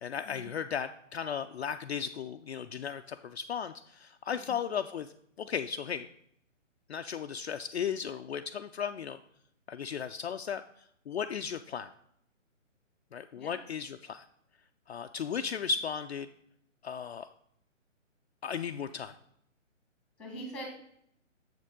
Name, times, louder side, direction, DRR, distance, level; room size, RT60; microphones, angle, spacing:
voice 1, 0.0-5.1 5.4-6.1 6.9-9.2 9.7-11.9 13.1-14.2 14.9-16.3 16.8-17.3 18.4-19.2, left 7 dB, 55° left, 7 dB, 0.4 m, -36 dB
voice 2, 4.3-4.6 13.3-13.6 20.2-20.7, right 1 dB, ahead, 2 dB, 1.4 m, -43 dB
7.5 x 6.6 x 3.6 m, 0.70 s
hypercardioid pair, 150°, 39 cm